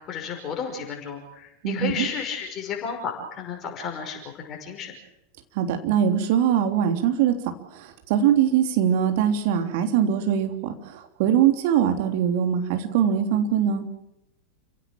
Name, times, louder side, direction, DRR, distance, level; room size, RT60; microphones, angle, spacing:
voice 1, 0.1-4.9, left 6 dB, 30° left, 2 dB, 5.6 m, -32 dB
voice 2, 1.6-2.1 5.5-7.3 7.7-13.9, right 9 dB, 50° right, 5 dB, 3.3 m, -22 dB
29.5 x 17.0 x 7.6 m, 0.85 s
figure-of-eight pair, 90°, 0 cm